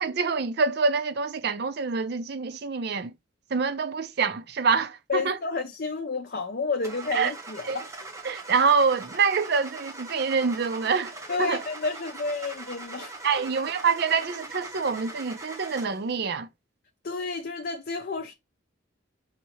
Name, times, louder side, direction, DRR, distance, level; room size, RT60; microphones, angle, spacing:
voice 1, 0.0-3.1 3.5-5.4 7.1-7.3 7.7-7.8 8.2-11.1 11.4-11.6 13.2-16.5, right 5 dB, 50° right, 0.5 m, -26 dB
voice 2, 5.1-7.8 11.3-13.1 17.0-18.3, left 4 dB, 50° left, 0.6 m, -30 dB
Car / Engine starting, 6.8-16.1, right 2 dB, 15° right, 0.8 m, -41 dB
5.8 x 2.7 x 2.9 m
head